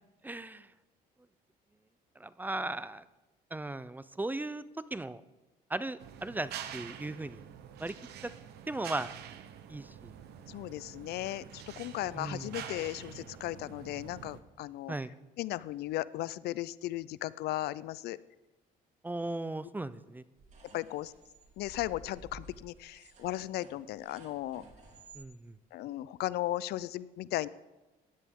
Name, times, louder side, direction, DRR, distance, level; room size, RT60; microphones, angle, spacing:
voice 1, 0.2-0.7 2.2-3.0 3.5-4.6 4.9-5.2 5.7-7.4 7.8-7.9 8.2-8.3 8.7-9.1 9.7-10.1 12.1-12.5 14.9-15.1 19.0-20.2 25.1-25.5, right 2 dB, 10° right, 15 dB, 0.4 m, -37 dB
sound 1, 6.0-14.4, right 9 dB, 75° right, 1.0 m, -46 dB
voice 2, 10.5-15.0 15.4-18.2 20.7-21.1 21.6-24.6 25.7-27.5, left 15 dB, 70° left, 19 dB, 0.4 m, -36 dB
sound 2, 20.4-25.3, right 2 dB, 45° right, 3.3 m, -54 dB
16.0 x 10.5 x 3.7 m, 1.1 s
cardioid pair, 110°, 17 cm